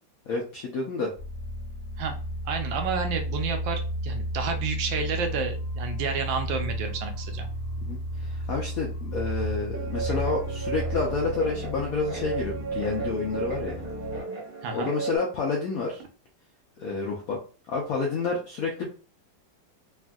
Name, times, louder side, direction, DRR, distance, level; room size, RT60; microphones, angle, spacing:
voice 1, 0.3-1.1 7.8-13.8 14.7-16.0 16.8-17.4 17.7-18.9, left 4 dB, 75° left, -1 dB, 0.8 m, -29 dB
sound 1, 1.2-14.2, equal, 45° left, 1.2 m, -33 dB
voice 2, 2.5-7.5 14.6-14.9, right 5 dB, 80° right, 6 dB, 1.3 m, -30 dB
Guitar, 9.7-15.2, right 5 dB, 35° right, 0.9 m, -35 dB
3.4 x 2.4 x 2.2 m, 0.37 s
omnidirectional pair, 2.1 m